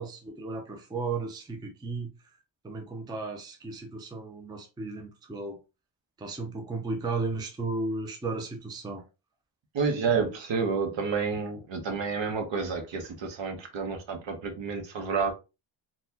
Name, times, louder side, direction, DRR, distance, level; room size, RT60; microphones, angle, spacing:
voice 1, 0.0-2.1 2.6-5.6 6.2-9.0, right 3 dB, 10° right, 0.4 m, -34 dB
voice 2, 9.7-15.3, right 5 dB, 60° right, 1.0 m, -29 dB
4.0 x 2.3 x 2.7 m
wide cardioid pair, 150°, 49 cm